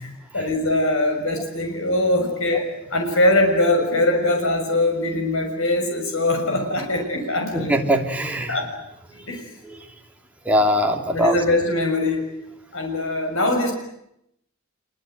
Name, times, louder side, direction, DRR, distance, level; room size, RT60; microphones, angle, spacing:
voice 1, 0.0-7.7 8.5-8.7 9.2-9.5 11.1-12.2 12.7-13.7, left 1 dB, 70° left, 3 dB, 6.2 m, -22 dB
voice 2, 7.5-8.6 9.1-9.9 10.4-11.4, equal, 5° right, 1 dB, 2.9 m, -22 dB
26.0 x 23.5 x 9.3 m, 0.78 s
head